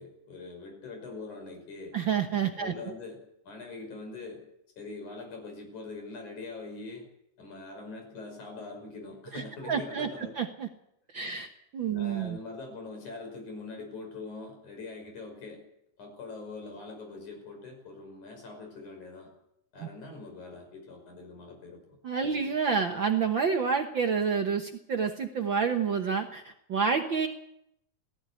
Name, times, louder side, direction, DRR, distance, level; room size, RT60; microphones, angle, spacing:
voice 1, 0.0-2.0 2.5-4.4 4.8-7.1 7.4-10.4 11.3-11.4 11.9-15.6 16.0-19.3 19.7-21.8 22.2-22.5, left 3 dB, 75° left, 4 dB, 7.2 m, -43 dB
voice 2, 1.9-2.7 9.3-10.7 11.1-12.4 19.8-19.9 22.0-27.3, right 6 dB, 55° right, 5 dB, 1.5 m, -29 dB
18.5 x 14.5 x 9.7 m, 0.78 s
omnidirectional pair, 3.4 m